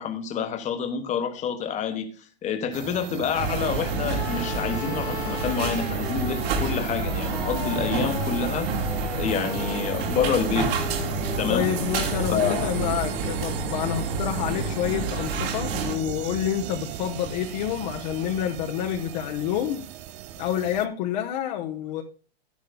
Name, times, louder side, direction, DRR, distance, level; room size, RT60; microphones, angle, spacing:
voice 1, 0.0-2.1 2.4-10.7 11.4-11.7 12.3-12.7, left 7 dB, 25° left, 1.3 m, -28 dB
sound 1, 2.7-20.9, right 12 dB, 25° right, 0.4 m, -37 dB
sound 2, 3.3-16.0, right 4 dB, 65° right, 3.1 m, -29 dB
sound 3, 4.1-18.5, left 6 dB, 80° left, 2.6 m, -39 dB
voice 2, 11.5-19.8 20.4-22.0, left 10 dB, 45° left, 1.0 m, -28 dB
12.0 x 10.5 x 2.2 m
hypercardioid pair, 115°, 31 cm